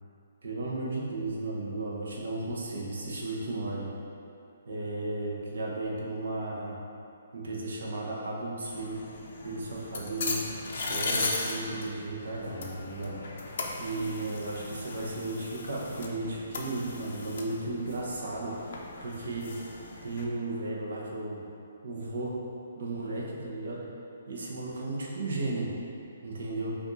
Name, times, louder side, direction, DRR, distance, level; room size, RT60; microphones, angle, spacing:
voice 1, 0.4-3.9 4.7-6.8 7.3-9.0 9.4-10.4 10.7-13.2 13.8-19.6 20.0-21.4 21.8-22.3 22.7-23.9 24.3-25.7 26.2-26.8, right 2 dB, 60° right, -3 dB, 0.9 m, -34 dB
sound 1, 8.7-20.2, left 3 dB, 45° left, 0.5 m, -38 dB
5.1 x 2.6 x 4.0 m, 2.6 s
hypercardioid pair, 180°, 0 cm